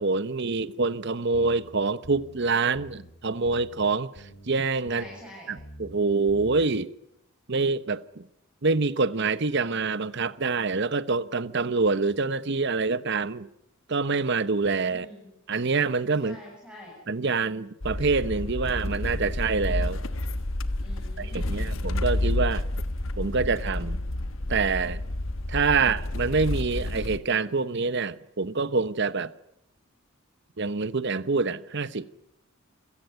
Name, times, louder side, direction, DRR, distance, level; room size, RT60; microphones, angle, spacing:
voice 1, 0.0-5.1 5.5-6.9 7.5-8.3 8.6-13.5 13.9-15.1 15.5-16.4 17.1-20.0 21.2-22.6 23.2-24.0 24.5-25.0 25.5-29.3 30.6-32.1, right 4 dB, 55° right, 0.9 m, -26 dB
sound 1, 1.3-1.7 2.0-2.4 2.7-3.1 3.4-3.8 4.1-4.5 4.9-5.2 5.6-5.9 6.3-6.6, equal, 85° left, 3.3 m, -46 dB
voice 2, 4.9-5.5 14.9-15.3 16.2-17.0 20.8-21.8, equal, 5° right, 7.7 m, -45 dB
sound 2, 17.8-27.2, left 1 dB, 65° left, 1.3 m, -30 dB
27.5 x 17.5 x 9.3 m
head